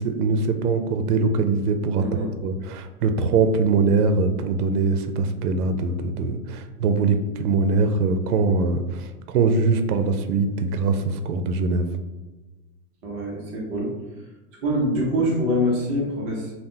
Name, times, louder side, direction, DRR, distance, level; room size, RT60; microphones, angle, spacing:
voice 1, 0.0-11.9, right 4 dB, 75° right, 8 dB, 0.5 m, -22 dB
voice 2, 2.0-2.3 13.0-13.9 14.6-16.5, equal, 15° right, -4 dB, 0.3 m, -24 dB
2.8 x 2.1 x 3.7 m, 1.2 s
hypercardioid pair, 125°, 47 cm